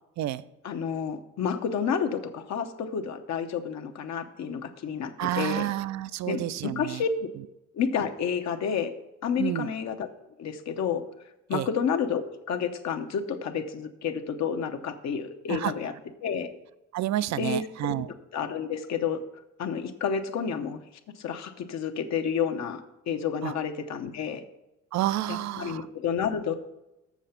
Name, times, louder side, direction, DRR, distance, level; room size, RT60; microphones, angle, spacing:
voice 1, 0.6-5.7 6.3-7.3 7.7-8.9 9.2-10.1 10.4-11.0 11.5-12.2 12.5-15.9 16.2-16.5 17.4-18.0 18.3-19.2 19.6-20.8 21.2-24.4 25.3-26.6, left 7 dB, 65° left, 6 dB, 0.8 m, -30 dB
voice 2, 5.2-7.0 9.4-9.7 11.5-11.7 15.5-15.7 16.9-18.1 23.4-23.5 24.9-25.9, right 14 dB, 65° right, 17 dB, 0.4 m, -29 dB
7.2 x 6.6 x 5.7 m, 0.93 s
cardioid pair, 90°, 30 cm